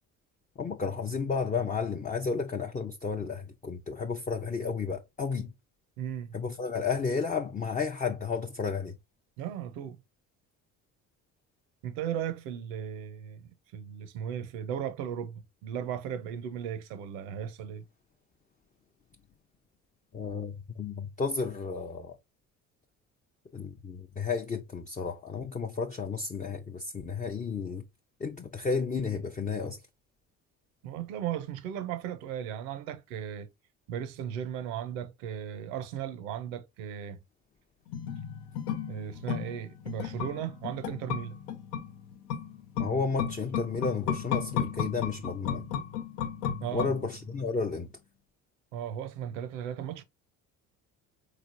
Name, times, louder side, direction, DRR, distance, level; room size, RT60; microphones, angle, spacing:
voice 1, 0.6-5.5 6.3-9.0 20.1-22.2 23.5-27.8 28.2-29.8 42.8-45.6 46.7-47.9, left 5 dB, 20° left, 0.5 m, -32 dB
voice 2, 6.0-6.3 9.4-10.0 11.8-17.8 30.8-33.5 33.9-37.2 38.9-41.4 46.6-46.9 48.7-50.0, right 9 dB, 80° right, 0.7 m, -36 dB
sound 1, 37.9-47.4 47.7-47.8, left 8 dB, 75° left, 0.7 m, -34 dB
3.8 x 3.2 x 2.5 m
hypercardioid pair, 65°, 39 cm